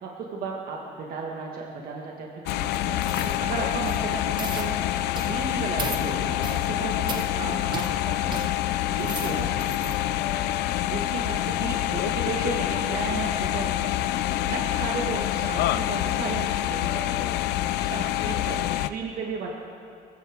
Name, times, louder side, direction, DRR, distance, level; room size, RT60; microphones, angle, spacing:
voice 1, 0.0-4.8 5.2-8.5 8.9-9.4 10.8-14.1 14.5-17.4 17.8-19.5, right 4 dB, 60° right, -1 dB, 1.8 m, -34 dB
sound 1, 2.5-18.9, left 14 dB, 80° left, 0.5 m, -27 dB
sound 2, 3.0-3.4 3.7-4.0 4.4-4.7 5.1-5.4 5.8-6.0 6.4-6.7 7.1-7.3 7.7-7.9 8.3-8.5 8.9-9.9 10.4-10.5, right 3 dB, 25° right, 1.5 m, -35 dB
sound 3, 4.0-17.7, left 4 dB, 40° left, 2.6 m, -44 dB
voice 2, 8.9-10.6 18.2-18.6, right 4 dB, 85° right, -1 dB, 2.7 m, -43 dB
22.0 x 15.0 x 3.6 m, 2.5 s
cardioid pair, 110°, 17 cm